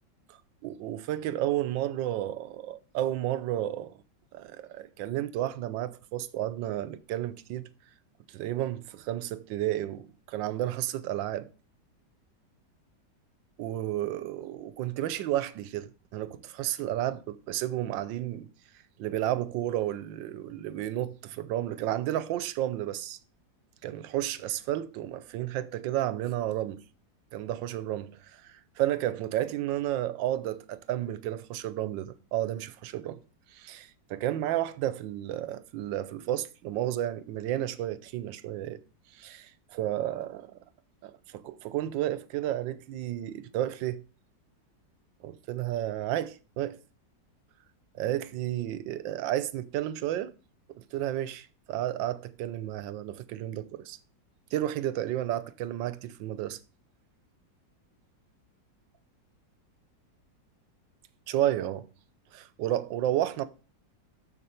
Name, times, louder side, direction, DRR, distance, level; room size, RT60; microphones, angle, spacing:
voice 1, 0.3-3.9 4.3-7.7 8.3-11.5 13.6-18.5 19.0-23.2 23.8-26.8 27.3-33.2 33.5-38.8 39.1-40.6 41.0-44.0 45.2-46.8 47.9-50.3 50.8-54.0 54.5-56.6 61.3-61.9 62.3-63.4, right 13 dB, 85° right, 1.3 m, -32 dB
6.9 x 6.8 x 4.3 m
omnidirectional pair, 2.0 m